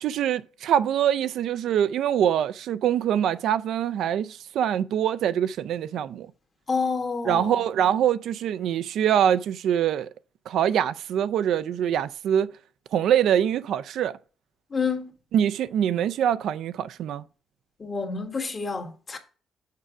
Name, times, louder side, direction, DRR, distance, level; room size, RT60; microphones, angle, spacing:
voice 1, 0.0-6.3 7.3-10.1 10.5-12.5 12.9-14.2 15.3-17.2, right 9 dB, 75° right, 0.4 m, -24 dB
voice 2, 6.7-7.6 14.7-15.1 17.8-19.2, left 5 dB, 35° left, 1.4 m, -28 dB
6.6 x 4.6 x 5.0 m
cardioid pair, 90°, 0 cm